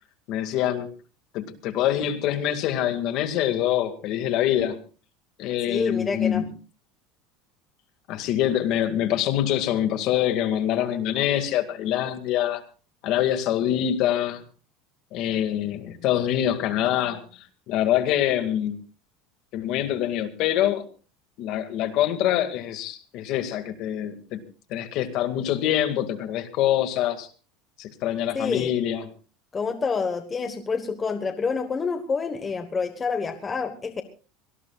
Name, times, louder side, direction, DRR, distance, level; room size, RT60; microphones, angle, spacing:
voice 1, 0.3-0.9 1.3-4.8 5.4-6.5 8.1-12.6 13.0-14.4 15.1-18.8 19.5-20.8 21.4-24.4 24.7-27.3 27.8-29.1, left 11 dB, 50° left, 9 dB, 2.0 m, -25 dB
voice 2, 5.7-6.4 28.3-28.7 29.5-34.0, left 5 dB, 20° left, 8 dB, 1.3 m, -27 dB
24.5 x 19.0 x 2.4 m, 0.36 s
cardioid pair, 155°, 0 cm